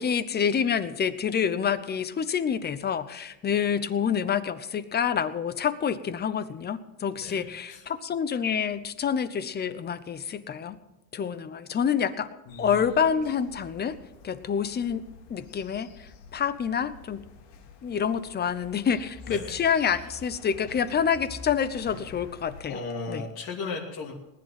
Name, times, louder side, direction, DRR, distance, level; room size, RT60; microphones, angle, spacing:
voice 1, 0.0-10.8 11.1-12.3 12.6-14.0 14.2-15.0 15.3-17.3 17.8-22.8 23.1-23.2, left 7 dB, 20° left, 14 dB, 0.7 m, -27 dB
voice 2, 7.2-7.8 12.5-12.8 19.3-19.6 22.7-24.1, left 4 dB, 55° left, -1 dB, 2.8 m, -36 dB
sound 1, 12.5-22.6, left 4 dB, 85° left, 3.2 m, -48 dB
19.5 x 10.5 x 5.9 m, 0.93 s
cardioid pair, 145°, 44 cm